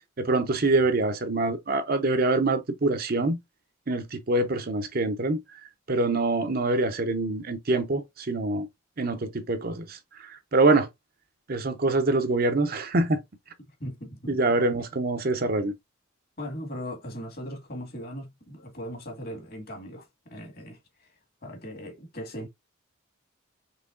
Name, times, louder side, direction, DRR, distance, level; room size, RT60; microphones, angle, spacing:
voice 1, 0.2-3.4 3.9-5.4 5.9-8.7 9.0-10.9 11.5-13.2 14.3-15.7, right 2 dB, 45° right, 0.7 m, -25 dB
voice 2, 13.8-14.4 16.4-21.1 21.4-22.5, equal, 50° left, 1.8 m, -39 dB
5.6 x 3.4 x 2.5 m
head